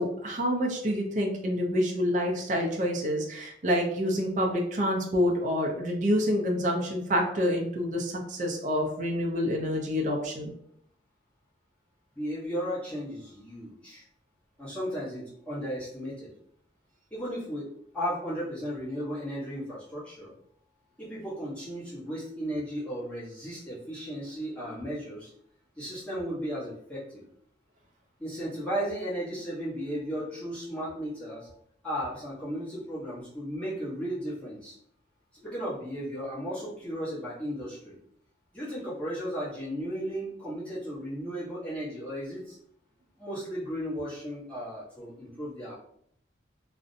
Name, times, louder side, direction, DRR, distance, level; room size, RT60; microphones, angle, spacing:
voice 1, 0.0-10.5, equal, 40° right, 0 dB, 0.4 m, -27 dB
voice 2, 12.2-14.0 14.6-16.3 17.1-20.3 21.0-25.3 25.8-27.2 28.2-31.5 31.8-34.8 35.4-37.9 38.5-42.6 43.2-45.7, equal, 5° left, -10 dB, 1.0 m, -35 dB
2.5 x 2.0 x 2.5 m, 0.68 s
head